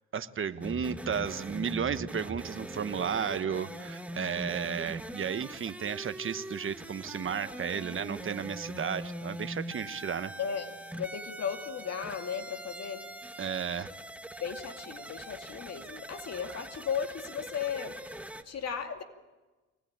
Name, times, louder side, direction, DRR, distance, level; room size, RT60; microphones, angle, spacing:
voice 1, 0.1-10.3 13.4-13.9 16.5-16.6, right 7 dB, 45° right, 12 dB, 1.2 m, -33 dB
sound 1, 0.6-18.4, right 1 dB, 5° right, 1.4 m, -42 dB
voice 2, 10.4-13.0 14.4-18.0 18.4-19.0, left 7 dB, 55° left, 6 dB, 2.5 m, -36 dB
24.5 x 19.5 x 8.8 m, 1.2 s
cardioid pair, 90°, 30 cm